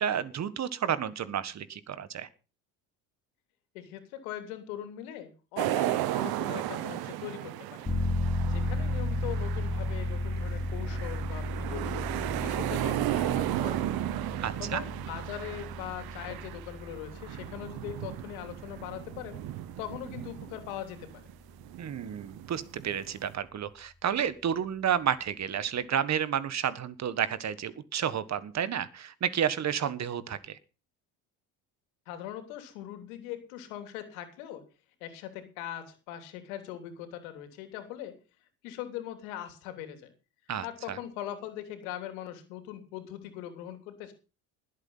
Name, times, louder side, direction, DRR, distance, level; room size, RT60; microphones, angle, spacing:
voice 1, 0.0-2.3 14.4-14.8 21.8-30.6 40.5-41.0, right 9 dB, 40° right, 15 dB, 1.5 m, -31 dB
voice 2, 3.7-7.9 8.4-12.1 12.4-13.9 14.6-19.4 19.8-21.1 32.1-34.6 35.0-38.2 38.6-40.1 40.6-44.1, left 11 dB, 85° left, 8 dB, 3.3 m, -41 dB
sound 1, 5.6-21.3 21.6-23.3, right 14 dB, 60° right, 1.2 m, -35 dB
sound 2, 7.9-20.4 20.7-20.8, equal, 20° left, 4.7 m, -34 dB
19.5 x 8.3 x 5.6 m, 0.33 s
supercardioid pair, 90°, 41 cm